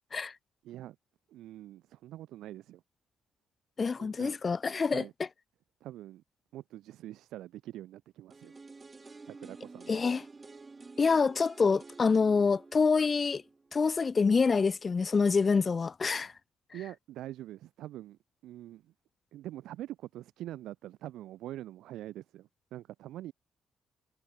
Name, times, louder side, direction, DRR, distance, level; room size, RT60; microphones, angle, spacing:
voice 1, 0.6-1.0 1.3-2.8 4.0-4.4 4.9-5.1 5.8-6.2 6.5-8.6 9.2-10.0 16.7-18.9 19.3-23.3, right 14 dB, 85° right, 1.6 m, -44 dB
voice 2, 3.8-5.3 9.9-10.2 11.0-13.4 13.7-16.3, left 5 dB, 35° left, 0.3 m, -26 dB
sound 1, 8.3-14.2 14.5-14.6, right 3 dB, 25° right, 1.4 m, -51 dB
cardioid pair, 90°, 0 cm